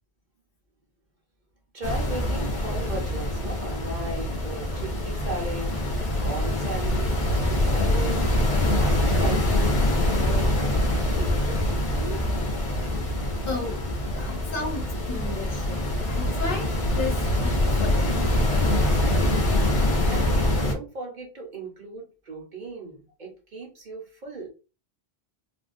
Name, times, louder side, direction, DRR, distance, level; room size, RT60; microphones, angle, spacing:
voice 1, 1.7-5.7 6.2-8.2 8.8-12.2 14.2-14.4 20.1-24.5, right 2 dB, 50° right, 0 dB, 0.9 m, -37 dB
sound 1, 1.8-20.7, left 1 dB, 40° left, 0.7 m, -24 dB
voice 2, 13.5-13.8 14.1-18.3 18.7-18.8, left 3 dB, 60° left, 2 dB, 1.0 m, -34 dB
3.5 x 2.2 x 2.5 m, 0.33 s
omnidirectional pair, 1.1 m